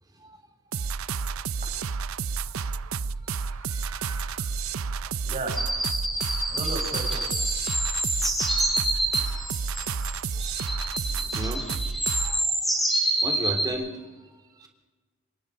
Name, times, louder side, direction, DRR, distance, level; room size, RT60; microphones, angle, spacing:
sound 1, 0.7-12.4, right 5 dB, 85° right, 0.6 m, -31 dB
voice 1, 1.4-2.0 2.4-2.5 5.2-7.3, right 2 dB, 35° right, 1 dB, 7.3 m, -37 dB
voice 2, 3.3-4.5 9.0-9.5 11.1-11.6 12.2-12.4 13.2-14.0 14.6-14.7, right 1 dB, 20° right, 3 dB, 3.3 m, -36 dB
sound 2, 5.6-13.7, right 1 dB, ahead, 5.1 m, -27 dB
27.0 x 22.5 x 5.1 m, 1.3 s
head